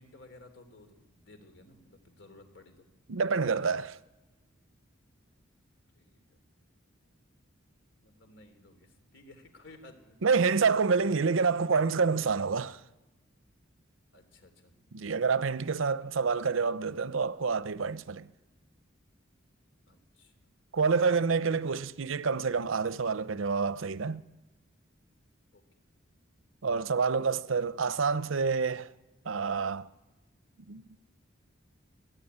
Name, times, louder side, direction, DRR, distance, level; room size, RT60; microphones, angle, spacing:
voice 1, 0.0-2.8 6.0-6.2 8.0-10.3 14.1-14.7 16.0-16.2 19.9-20.3 21.1-21.4 25.5-25.6, left 2 dB, 70° left, 3.3 m, -55 dB
voice 2, 3.1-4.0 10.2-12.8 14.9-18.3 20.7-24.2 26.6-28.9 29.3-29.9 30.7-31.0, right 5 dB, 85° right, 0.7 m, -28 dB
21.5 x 14.5 x 9.6 m
head